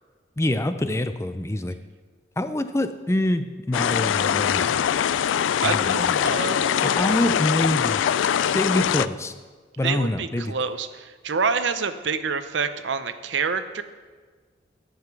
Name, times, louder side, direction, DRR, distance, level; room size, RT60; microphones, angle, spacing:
voice 1, 0.4-1.8 2.4-4.9 5.6-8.1 8.4-9.3 9.8-10.5, left 1 dB, 15° left, 10 dB, 0.4 m, -26 dB
sound 1, 3.7-9.1, left 9 dB, 90° left, 0.3 m, -22 dB
voice 2, 5.6-7.0 9.8-13.8, right 5 dB, 80° right, 11 dB, 0.7 m, -27 dB
10.5 x 8.0 x 5.9 m, 1.5 s
head